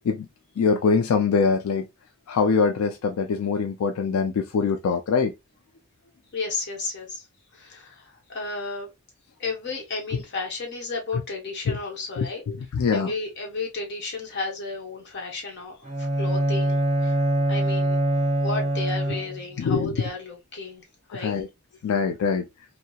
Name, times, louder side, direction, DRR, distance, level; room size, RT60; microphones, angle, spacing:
voice 1, 0.6-1.9 2.3-5.3 11.7-11.8 12.2-13.1 19.6-20.1 21.1-21.5 21.8-22.5, left 5 dB, 90° left, 0.3 m, -23 dB
voice 2, 6.3-7.3 7.5-8.9 9.4-12.4 12.9-17.2 17.5-18.0 18.4-20.8 21.1-21.4, left 3 dB, 55° left, 0.9 m, -33 dB
Bowed string instrument, 15.8-19.6, right 1 dB, 30° right, 0.7 m, -24 dB
2.7 x 2.0 x 2.2 m
head